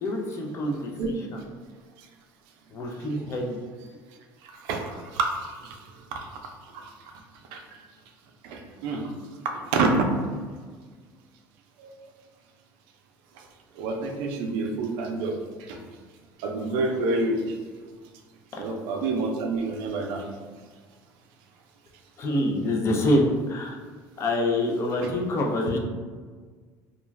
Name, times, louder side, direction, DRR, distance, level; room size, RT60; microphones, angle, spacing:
voice 1, 0.0-1.4 2.7-3.6 22.2-23.8 24.2-25.8, left 1 dB, 35° left, 0 dB, 0.5 m, -26 dB
voice 2, 8.4-9.0 9.7-10.0 13.8-15.3 15.7-15.8 16.4-17.4 18.6-20.2 25.0-25.1, right 3 dB, 80° right, 3 dB, 0.4 m, -27 dB
2.4 x 2.2 x 3.2 m, 1.5 s
cardioid pair, 135°, 8 cm